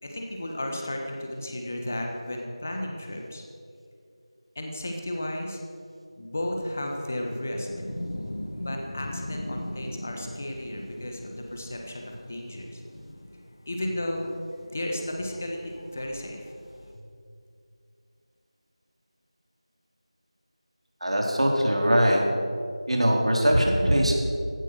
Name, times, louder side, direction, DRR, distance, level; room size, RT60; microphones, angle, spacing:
voice 1, 0.0-3.4 4.5-5.6 6.2-7.7 8.6-12.8 13.7-14.3 14.6-16.5 16.9-17.0, left 1 dB, 20° left, 2 dB, 1.4 m, -34 dB
sound 1, 7.6-16.9, left 1 dB, 50° left, 1.7 m, -40 dB
voice 2, 21.0-22.2 22.9-24.1, equal, 70° right, 0 dB, 4.0 m, -21 dB
15.5 x 12.0 x 6.5 m, 2.4 s
figure-of-eight pair, 180°, 3 cm